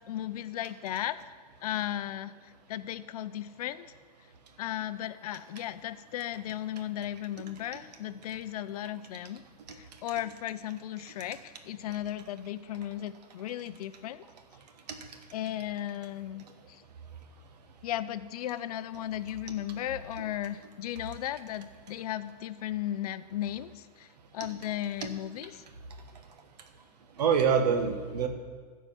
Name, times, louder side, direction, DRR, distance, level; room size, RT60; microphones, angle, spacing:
voice 1, 0.1-1.2 1.6-3.9 4.6-9.4 9.7-14.2 15.3-16.8 17.8-25.6, left 12 dB, 65° left, 14 dB, 0.5 m, -36 dB
voice 2, 27.1-28.3, right 6 dB, 80° right, 6 dB, 1.3 m, -26 dB
12.0 x 4.7 x 7.3 m, 1.5 s
hypercardioid pair, 145°, 21 cm